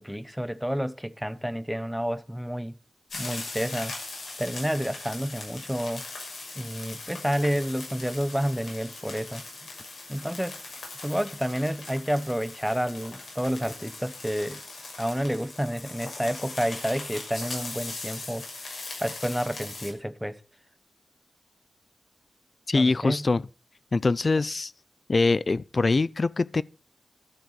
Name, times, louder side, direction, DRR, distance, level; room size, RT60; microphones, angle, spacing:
voice 1, 0.0-2.7 3.1-3.9 4.4-6.1 6.6-9.4 10.1-10.6 11.0-14.6 15.0-18.5 19.0-20.4 22.7-23.3, equal, 5° right, 0.8 m, -29 dB
sound 1, 3.1-19.9, left 3 dB, 70° left, 6.3 m, -40 dB
voice 2, 22.7-23.4 23.9-24.7 25.1-26.6, left 3 dB, 40° left, 0.5 m, -23 dB
12.5 x 8.1 x 6.5 m
wide cardioid pair, 135°, 0 cm